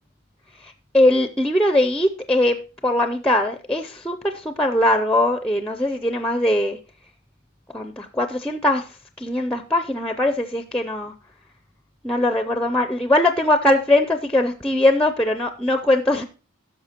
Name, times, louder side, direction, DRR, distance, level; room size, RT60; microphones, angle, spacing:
voice 1, 0.6-2.6 2.8-6.8 7.7-8.8 9.2-11.1 12.0-16.2, left 1 dB, 5° left, 8 dB, 0.4 m, -21 dB
15.5 x 6.2 x 2.9 m, 0.34 s
head